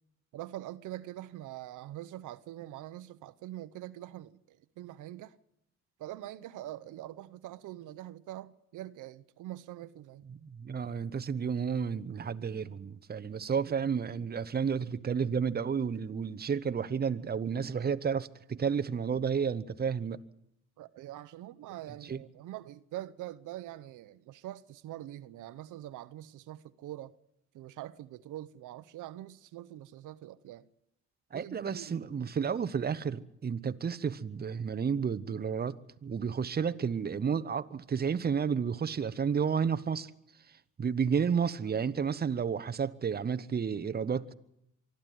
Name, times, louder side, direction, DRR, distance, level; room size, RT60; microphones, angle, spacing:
voice 1, 0.3-5.4 6.0-10.2 13.5-13.8 20.8-27.2 27.5-30.7 31.3-32.3, right 14 dB, 85° right, 0.8 m, -44 dB
voice 2, 10.3-20.2 22.0-22.2 31.3-40.1 40.8-44.3, right 6 dB, 30° right, 0.9 m, -31 dB
24.5 x 13.0 x 9.3 m
cardioid pair, 90°, 30 cm